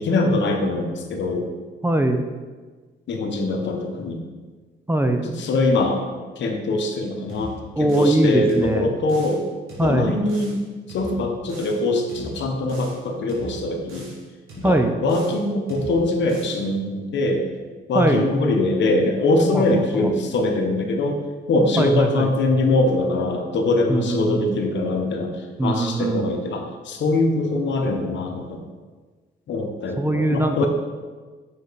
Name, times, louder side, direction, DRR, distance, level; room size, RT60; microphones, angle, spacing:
voice 1, 0.0-1.4 3.1-4.2 5.2-6.0 6.4-9.4 9.8-10.6 10.9-14.1 14.6-17.5 17.9-25.3 25.6-28.6 29.5-30.7, left 2 dB, 65° left, 4 dB, 0.9 m, -22 dB
voice 2, 1.8-2.3 4.9-5.3 7.8-8.9 9.8-10.1 14.6-15.0 17.9-18.3 19.5-19.6 19.9-20.1 21.8-22.3 23.9-24.5 25.6-26.3 30.0-30.7, right 1 dB, 10° right, 5 dB, 0.5 m, -21 dB
sound 1, 7.3-8.2 8.5-9.4 9.7-10.6 10.9-11.8 12.1-13.0 13.3-14.2 14.5-15.4 15.7-16.6, equal, 90° right, 1.9 m, -39 dB
5.6 x 5.1 x 4.0 m, 1.4 s
cardioid pair, 90°, 20 cm